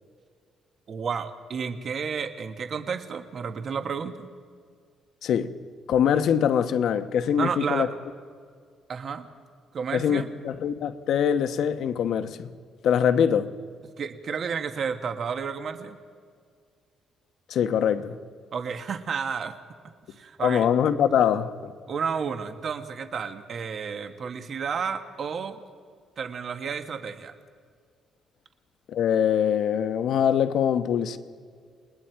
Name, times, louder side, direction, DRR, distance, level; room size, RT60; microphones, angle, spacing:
voice 1, 0.9-4.3 7.4-7.9 8.9-9.3 9.7-10.3 14.0-16.0 18.5-19.5 20.2-20.7 21.9-25.6 26.2-27.3, right 6 dB, 55° right, 1.4 m, -31 dB
voice 2, 5.9-7.9 9.9-12.5 12.8-13.5 17.5-18.2 20.4-21.7 28.9-31.2, left 8 dB, 75° left, 1.0 m, -23 dB
28.0 x 20.5 x 4.6 m
cardioid pair, 90°, 0 cm